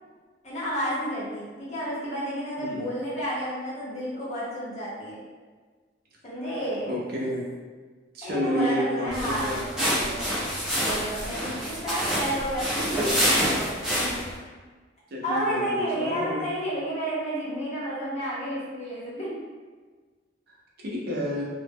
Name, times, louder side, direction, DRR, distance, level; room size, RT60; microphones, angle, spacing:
voice 1, 0.4-5.2 6.2-7.0 8.2-9.6 10.8-14.1 15.2-19.3, equal, 40° left, -7 dB, 0.9 m, -31 dB
voice 2, 6.9-7.5 8.1-10.3 15.1-16.5 20.8-21.4, equal, 55° right, -3 dB, 0.5 m, -30 dB
sound 1, 9.1-14.4, equal, 5° right, 0.6 m, -27 dB
2.0 x 2.0 x 3.4 m, 1.4 s
head